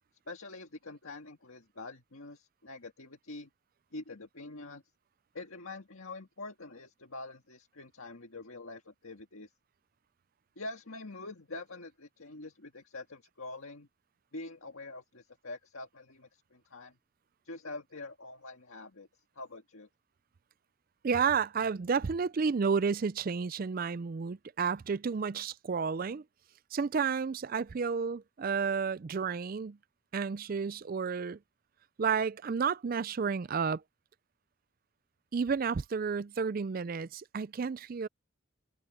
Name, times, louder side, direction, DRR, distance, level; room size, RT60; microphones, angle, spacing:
voice 1, 0.3-3.5 3.9-4.8 5.3-9.5 10.6-13.9 14.3-17.0 17.4-19.9, left 2 dB, 75° left, 1.8 m, -45 dB
voice 2, 21.0-26.2 26.7-29.8 30.1-31.4 32.0-33.8 35.3-38.1, right 5 dB, 40° right, 0.4 m, -31 dB
head